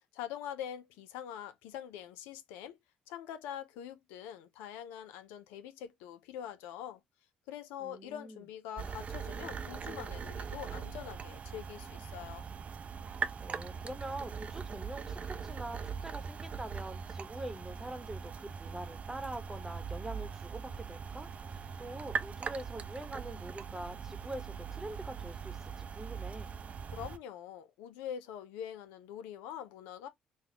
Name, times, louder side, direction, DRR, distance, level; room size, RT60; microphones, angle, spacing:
voice 1, 0.1-2.8 3.1-7.0 7.5-12.5 26.9-30.1, left 10 dB, 80° left, 0.4 m, -44 dB
voice 2, 7.8-8.5 13.4-26.5, right 1 dB, 15° right, 1.0 m, -44 dB
sound 1, 8.8-27.2, right 6 dB, 45° right, 0.5 m, -41 dB
4.0 x 2.3 x 2.8 m
hypercardioid pair, 60°, 3 cm